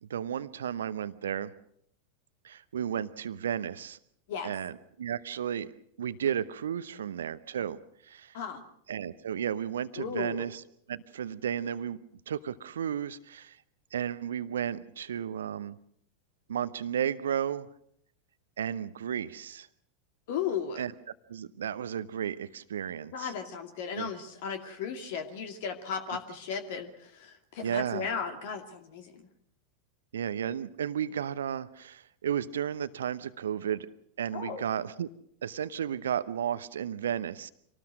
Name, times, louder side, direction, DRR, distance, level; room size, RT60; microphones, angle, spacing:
voice 1, 0.0-1.5 2.4-4.0 4.4-5.7 6.0-7.8 8.0-8.4 8.9-10.6 10.9-12.0 12.3-13.6 13.9-15.8 16.5-17.7 18.6-19.7 20.8-20.9 21.3-23.3 24.0-24.1 27.6-28.1 30.1-33.9 34.2-35.1 35.4-37.5, right 9 dB, 65° right, 14 dB, 0.8 m, -33 dB
voice 2, 10.0-10.5 20.3-20.8 23.1-29.2 34.3-34.7, left 7 dB, 50° left, 6 dB, 2.4 m, -36 dB
26.0 x 19.0 x 6.4 m, 0.68 s
figure-of-eight pair, 90°, 0 cm